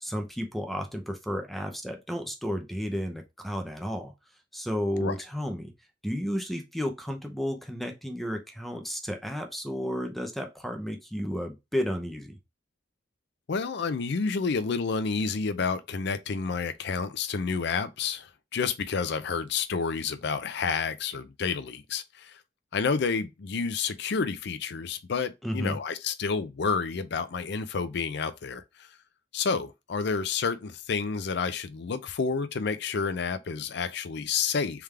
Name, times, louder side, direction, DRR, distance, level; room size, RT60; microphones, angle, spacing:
voice 1, 0.0-4.1 4.5-5.7 6.0-12.4 25.4-25.8, equal, ahead, 0.6 m, -32 dB
voice 2, 13.5-22.4 22.7-28.9 29.3-34.8, left 5 dB, 65° left, 0.5 m, -30 dB
3.5 x 3.4 x 3.3 m
head